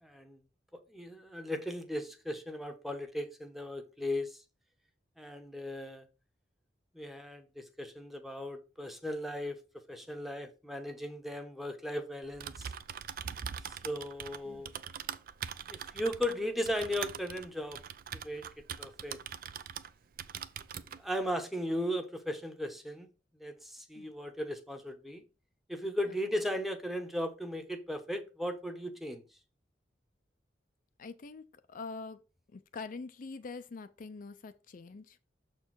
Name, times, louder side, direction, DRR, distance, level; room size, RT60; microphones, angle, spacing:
voice 1, 0.0-0.4 0.9-4.4 5.2-6.0 6.9-9.6 9.9-12.7 13.7-14.7 15.7-17.8 18.1-18.4 18.8-19.2 21.0-23.1 23.4-25.2 25.7-29.2, equal, ahead, 0.9 m, -37 dB
Typing, 12.2-19.9 20.2-21.0, right 8 dB, 55° right, 0.4 m, -42 dB
voice 2, 31.0-32.2 32.5-35.2, left 4 dB, 50° left, 0.5 m, -45 dB
6.7 x 4.4 x 4.6 m
head